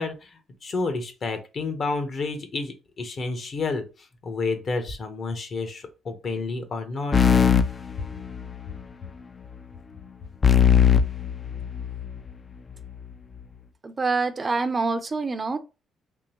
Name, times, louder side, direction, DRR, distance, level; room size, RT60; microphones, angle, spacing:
voice 1, 0.0-3.8 4.2-7.2, left 3 dB, 50° left, 0.9 m, -30 dB
sound 1, 7.1-8.7 10.4-12.2, left 7 dB, 35° left, 0.3 m, -20 dB
voice 2, 13.8-15.6, right 3 dB, 30° right, 0.5 m, -26 dB
3.6 x 3.0 x 2.9 m
cardioid pair, 90°, 0 cm